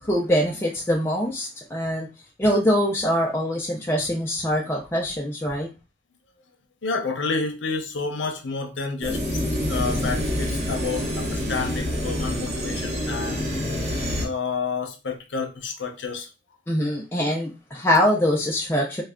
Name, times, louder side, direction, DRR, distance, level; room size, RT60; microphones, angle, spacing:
voice 1, 0.0-2.1 2.4-5.7 16.7-19.0, equal, 15° left, 0.4 m, -23 dB
voice 2, 6.8-13.8 14.2-16.3, left 4 dB, 75° left, 0.7 m, -30 dB
sound 1, 9.0-14.3, equal, 35° right, 0.9 m, -27 dB
3.2 x 2.2 x 3.5 m
head